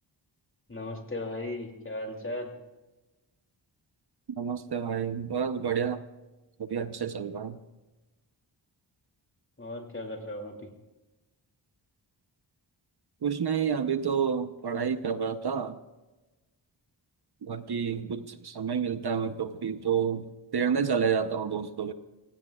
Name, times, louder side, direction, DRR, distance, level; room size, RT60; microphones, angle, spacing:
voice 1, 0.7-2.5 9.6-10.7, left 1 dB, 25° left, 3 dB, 2.7 m, -36 dB
voice 2, 4.4-6.0 6.6-7.6 13.2-15.8 17.4-21.9, right 7 dB, 60° right, 10 dB, 0.9 m, -29 dB
28.0 x 16.5 x 2.4 m, 1.1 s
wide cardioid pair, 95°, 45 cm